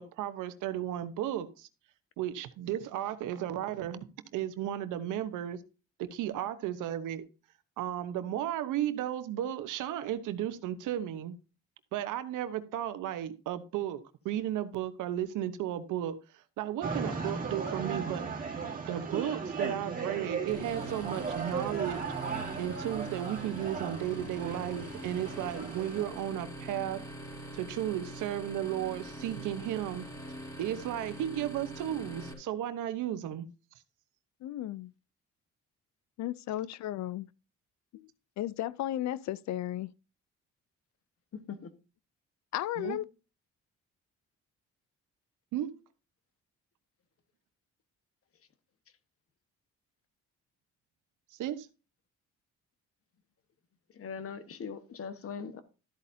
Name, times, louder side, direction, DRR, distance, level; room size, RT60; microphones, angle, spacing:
voice 1, 0.0-1.7 2.2-4.0 4.3-5.6 6.0-7.2 7.8-11.4 11.9-18.3 18.5-22.0 22.6-27.0 27.5-30.0 30.6-33.4 42.8-43.0 45.5-45.7 51.4-51.7, right 11 dB, 90° right, 1.0 m, -34 dB
sound 1, 16.8-26.1, right 5 dB, 30° right, 2.8 m, -37 dB
sound 2, 20.5-32.3, right 1 dB, 10° left, 3.7 m, -43 dB
voice 2, 34.4-34.9 36.2-37.3 37.9-38.1 38.4-39.9 42.5-43.0, left 13 dB, 65° left, 0.4 m, -34 dB
voice 3, 54.0-55.6, left 6 dB, 50° left, 1.3 m, -40 dB
13.0 x 8.4 x 2.7 m
cardioid pair, 90°, 30 cm